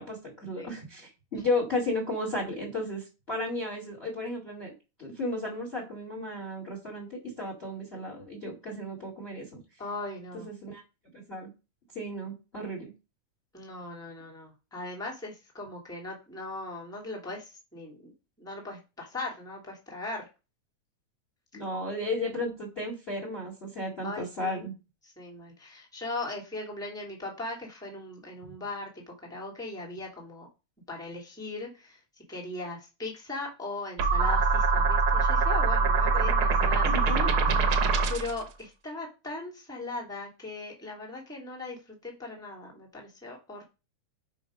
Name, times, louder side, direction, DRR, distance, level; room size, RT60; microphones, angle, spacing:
voice 1, 0.0-4.7 5.0-9.6 10.3-10.8 11.1-11.5 11.9-12.9 21.5-24.7 36.8-37.6, left 1 dB, 20° left, 3 dB, 1.9 m, -34 dB
voice 2, 9.8-10.5 13.5-18.1 18.4-20.2 24.0-24.6 25.2-30.5 30.9-32.0 32.3-37.8 38.1-43.6, left 2 dB, ahead, -2 dB, 2.1 m, -39 dB
sound 1, 34.0-38.4, right 4 dB, 65° right, 1.3 m, -24 dB
10.5 x 3.9 x 5.1 m, 0.30 s
omnidirectional pair, 3.7 m